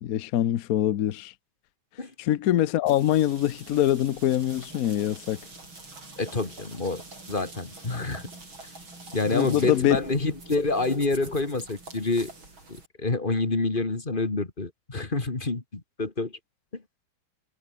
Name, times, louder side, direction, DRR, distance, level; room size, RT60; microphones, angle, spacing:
voice 1, 0.0-1.3 2.2-5.4 9.3-10.0, left 12 dB, 60° left, 1.1 m, -24 dB
sound 1, 2.9-12.9, right 2 dB, 85° right, 8.0 m, -45 dB
voice 2, 6.2-7.0 7.3-8.3 9.1-12.3 12.7-16.4 16.7-16.8, left 3 dB, 25° left, 2.4 m, -28 dB
omnidirectional pair, 2.2 m